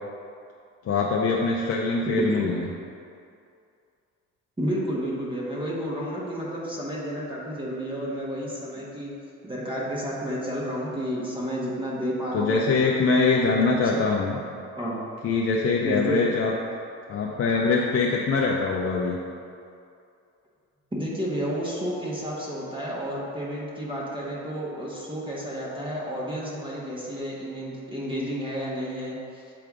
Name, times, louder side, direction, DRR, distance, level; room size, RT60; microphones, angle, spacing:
voice 1, 0.9-2.6 12.3-14.4 15.2-16.5 17.1-19.2, left 4 dB, 40° left, -2 dB, 0.7 m, -23 dB
voice 2, 2.1-2.5 4.6-9.1 9.4-14.0 14.8-15.0 15.8-16.4 20.9-29.4, equal, 15° right, -6 dB, 1.3 m, -31 dB
7.8 x 3.4 x 3.7 m, 2.5 s
hypercardioid pair, 65°, 35 cm